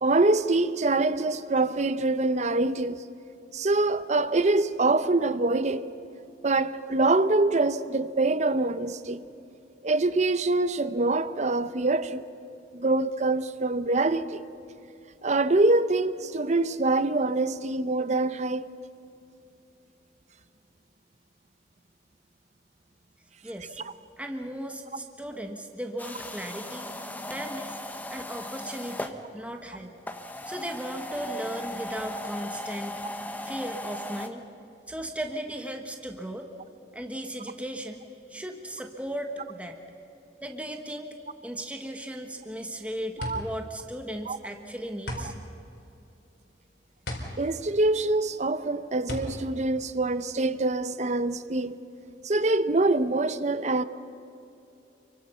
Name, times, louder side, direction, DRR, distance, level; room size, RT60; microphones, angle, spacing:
voice 1, 0.0-3.0 3.5-5.9 6.4-9.2 9.8-12.3 12.7-14.4 15.2-18.7 43.2-43.4 44.3-44.4 47.4-51.7 52.2-53.8, right 2 dB, 40° right, 0.8 m, -25 dB
voice 2, 23.4-23.8 24.2-26.9 27.3-27.8 28.1-29.9 30.5-32.9 33.4-34.4 34.9-36.5 36.9-38.0 38.3-39.8 40.4-41.2 41.4-45.3, right 1 dB, 5° right, 1.4 m, -36 dB
sound 1, 26.0-29.2 30.0-34.3, left 1 dB, 10° left, 1.2 m, -37 dB
sound 2, 42.4-50.7, left 1 dB, 65° left, 4.3 m, -39 dB
29.0 x 24.0 x 5.8 m
head